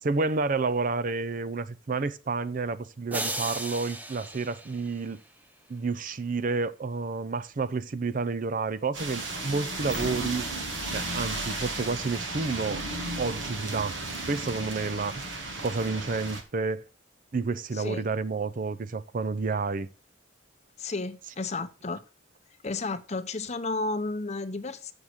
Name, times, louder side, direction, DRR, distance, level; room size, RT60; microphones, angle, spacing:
voice 1, 0.0-5.2 5.7-10.5 10.9-12.8 13.2-14.0 14.3-15.2 15.6-16.8 17.3-19.9, right 4 dB, 45° right, 0.5 m, -30 dB
sound 1, 3.1-5.4, right 1 dB, 10° right, 0.7 m, -36 dB
sound 2, 8.9-16.4, right 2 dB, 70° right, 1.6 m, -34 dB
voice 2, 17.7-18.1 20.8-22.0 22.6-24.9, left 3 dB, 35° left, 0.7 m, -32 dB
7.2 x 6.5 x 6.2 m
head